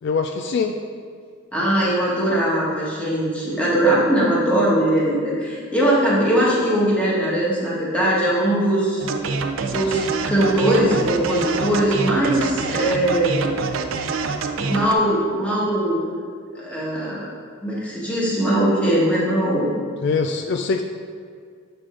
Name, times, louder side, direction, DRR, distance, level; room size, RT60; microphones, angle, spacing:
voice 1, 0.0-0.8 20.0-20.8, left 4 dB, 55° left, 5 dB, 0.3 m, -23 dB
voice 2, 1.5-9.0 9.6-13.5 14.6-16.0 16.5-17.2 17.6-19.7, right 1 dB, 5° left, -7 dB, 1.4 m, -20 dB
sound 1, 9.0-14.9, right 4 dB, 75° right, 0.5 m, -26 dB
7.6 x 4.9 x 3.7 m, 2.1 s
head